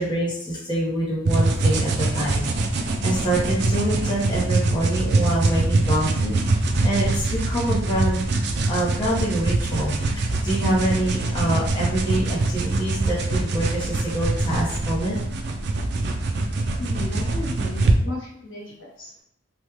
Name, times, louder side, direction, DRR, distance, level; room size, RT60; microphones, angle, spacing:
voice 1, 0.0-2.4 2.7-8.2 8.7-15.2, right 1 dB, 20° left, -7 dB, 0.8 m, -26 dB
sound 1, 1.3-18.0, right 2 dB, 55° right, 0.4 m, -23 dB
voice 2, 16.8-19.2, left 2 dB, 70° left, -3 dB, 0.9 m, -35 dB
3.3 x 2.3 x 3.1 m, 0.73 s
head